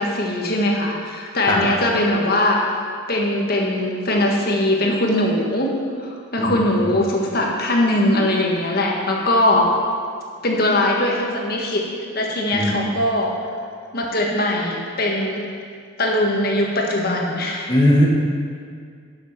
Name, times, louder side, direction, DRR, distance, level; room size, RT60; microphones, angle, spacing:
voice 1, 0.0-2.6 3.1-5.7 6.0-9.7 10.4-11.8 12.1-13.3 13.9-15.5 16.0-17.7, left 1 dB, 45° left, -1 dB, 1.6 m, -21 dB
voice 2, 6.4-6.9 12.5-12.8 17.7-18.1, equal, 20° left, -2 dB, 1.4 m, -19 dB
11.5 x 6.7 x 6.0 m, 2.1 s
head